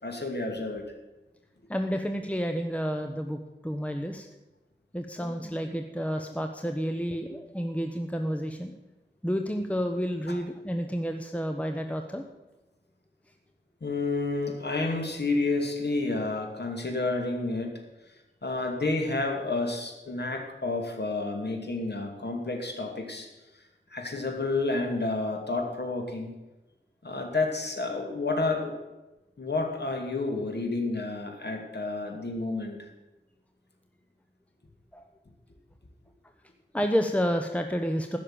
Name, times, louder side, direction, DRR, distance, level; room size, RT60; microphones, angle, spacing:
voice 1, 0.0-0.8 10.3-10.4 13.8-23.3 23.9-26.3 27.0-28.8 29.4-32.9, left 3 dB, 60° left, 2 dB, 2.7 m, -30 dB
voice 2, 1.7-4.3 4.9-8.7 9.2-12.2 34.9-35.1 36.7-38.2, equal, 5° left, 5 dB, 1.0 m, -30 dB
15.5 x 6.6 x 8.8 m, 1.1 s
wide cardioid pair, 70°, 19 cm